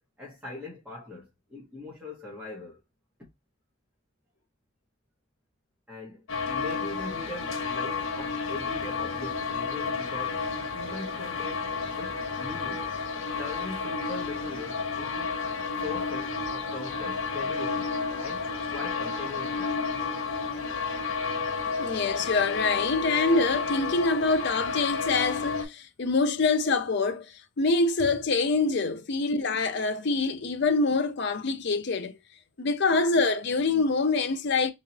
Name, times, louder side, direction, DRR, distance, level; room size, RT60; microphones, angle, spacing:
voice 1, 0.0-2.8 5.9-10.4 10.7-12.9 13.4-15.4 15.8-18.5 18.7-19.7, left 2 dB, 5° right, 1.2 m, -41 dB
sound 1, 6.3-25.7, left 5 dB, 85° left, 1.0 m, -31 dB
voice 2, 21.8-32.2 32.6-34.7, left 3 dB, 55° left, 0.5 m, -25 dB
3.7 x 3.0 x 2.8 m
head